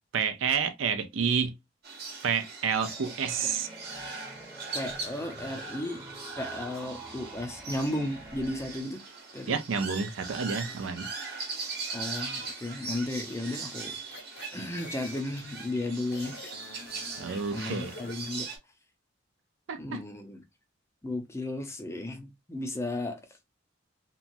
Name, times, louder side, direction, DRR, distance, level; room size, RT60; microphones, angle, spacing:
voice 1, 0.1-1.5 2.2-3.7 9.5-11.1 17.2-17.9 19.7-20.0, right 6 dB, 80° right, 0.5 m, -29 dB
sound 1, 1.8-18.6, right 4 dB, 55° right, 1.0 m, -40 dB
sound 2, 2.8-8.8, right 1 dB, 15° right, 0.8 m, -47 dB
voice 2, 4.7-6.0 6.4-9.0 9.3-9.6 11.9-14.0 14.5-16.4 17.5-18.5 19.8-20.4 21.0-23.2, left 1 dB, 15° left, 0.5 m, -34 dB
sound 3, 12.1-12.5 13.1-15.4 16.1-18.3, left 2 dB, 60° left, 0.7 m, -48 dB
2.9 x 2.4 x 2.5 m
head